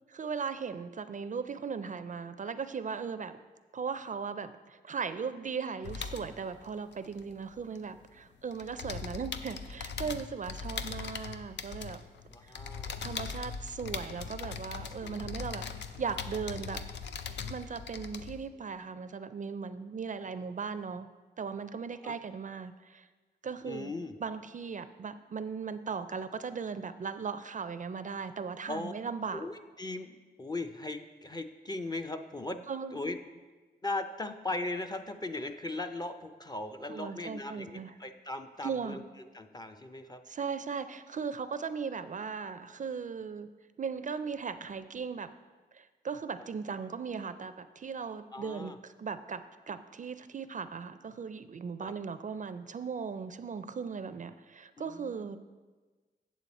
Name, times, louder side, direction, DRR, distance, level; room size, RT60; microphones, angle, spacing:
voice 1, 0.1-3.3 3.7-12.0 12.4-12.6 13.0-15.6 16.0-16.8 17.5-21.1 21.4-23.1 23.4-23.9 24.2-29.4 32.7-33.0 36.9-37.9 38.6-39.0 40.3-43.5 43.8-45.3 45.7-55.4, right 5 dB, 45° right, 11 dB, 0.4 m, -38 dB
sound 1, 5.8-8.1 8.4-18.5, left 6 dB, 90° left, 0.5 m, -40 dB
voice 2, 12.3-13.0 15.0-15.4 22.0-22.1 23.6-24.2 28.7-28.9 29.3-32.6 32.9-33.4 33.8-39.0 39.3-40.2 48.3-48.8 51.8-51.9 54.8-55.4, left 2 dB, 25° left, 7 dB, 0.5 m, -38 dB
8.4 x 7.2 x 4.1 m, 1.3 s
wide cardioid pair, 95°, 18 cm